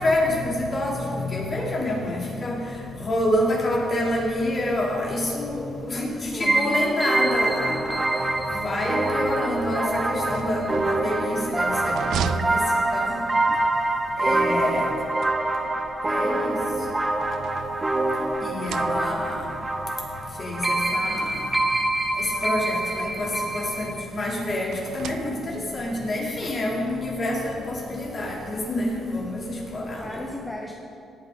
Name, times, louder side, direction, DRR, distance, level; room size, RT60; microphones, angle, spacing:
voice 1, 0.0-2.6 3.0-8.1 8.5-12.6 12.9-13.2 14.2-14.9 16.0-16.6 18.4-19.4 20.4-21.3 22.4-29.4 29.7-30.1, left 1 dB, 40° left, -3 dB, 3.4 m, -27 dB
voice 2, 5.9-6.8 13.1-13.6 14.5-14.9 29.9-30.7, left 1 dB, 10° left, -1 dB, 1.1 m, -37 dB
sound 1, 6.4-23.9, right 2 dB, 20° right, 1.3 m, -25 dB
sound 2, 10.2-13.4 14.7-15.9 16.7-18.1 18.5-19.4 20.3-20.4 20.8-20.9 22.1-23.4 24.6-25.8, right 8 dB, 75° right, 0.4 m, -37 dB
18.5 x 8.9 x 4.0 m, 2.6 s
cardioid pair, 90°, 0 cm